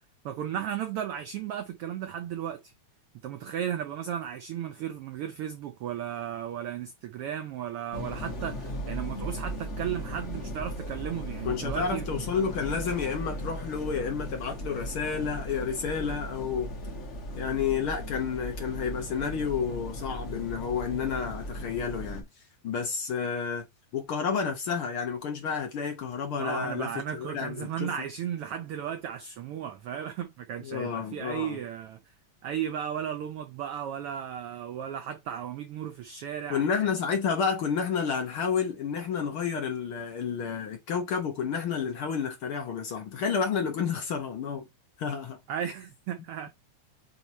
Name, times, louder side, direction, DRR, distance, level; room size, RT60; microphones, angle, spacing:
voice 1, 0.2-2.7 3.2-12.1 26.4-32.0 32.4-36.6 45.5-46.5, right 9 dB, 90° right, 1.2 m, -35 dB
sound 1, 7.9-22.2, equal, 40° left, 1.1 m, -37 dB
voice 2, 11.4-16.7 17.3-22.2 22.6-23.7 23.9-27.9 30.6-31.6 36.5-44.7 45.0-45.4, left 6 dB, 55° left, 1.6 m, -30 dB
8.4 x 3.2 x 4.1 m
omnidirectional pair, 3.4 m